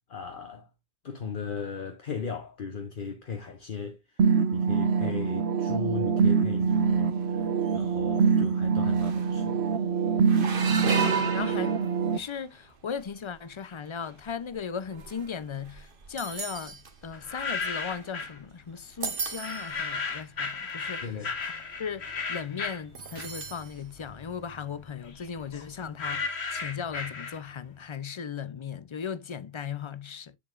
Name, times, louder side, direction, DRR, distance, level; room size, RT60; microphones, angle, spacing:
voice 1, 0.1-0.7 1.0-4.3 4.5-9.8 21.0-21.3, left 6 dB, 55° left, 1.0 m, -37 dB
sound 1, 4.2-12.2, right 6 dB, 85° right, 1.0 m, -25 dB
sound 2, 6.9-7.3 7.7-7.9 8.7-8.8 9.0-9.5 10.2-12.4 13.0-13.3 14.0-18.5 18.8-19.8 20.5-20.6 20.9-21.2 23.0-23.7 24.1-24.2 25.5-25.6, right 5 dB, 60° right, 1.3 m, -35 dB
voice 2, 10.7-11.7 12.1-21.1 21.4-21.5 21.8-30.4, left 6 dB, 40° left, 0.5 m, -37 dB
sound 3, 17.1-18.4 19.4-23.6 24.0-27.7, left 4 dB, 85° left, 1.5 m, -35 dB
7.0 x 6.9 x 2.4 m
omnidirectional pair, 1.1 m